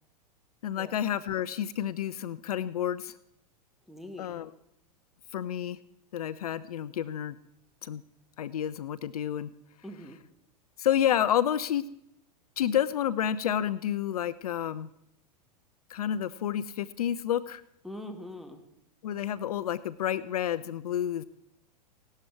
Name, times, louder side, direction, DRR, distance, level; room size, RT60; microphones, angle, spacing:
voice 1, 0.6-3.1 4.2-4.5 5.3-5.8 6.1-7.4 7.8-8.0 8.4-9.5 10.8-11.9 12.6-14.9 15.9-17.6 19.0-21.2, left 10 dB, 65° left, 17 dB, 0.5 m, -30 dB
voice 2, 3.9-4.3 9.8-10.2 17.8-18.6, left 1 dB, ahead, 5 dB, 1.7 m, -42 dB
17.0 x 12.0 x 4.6 m, 0.76 s
figure-of-eight pair, 95°, 20 cm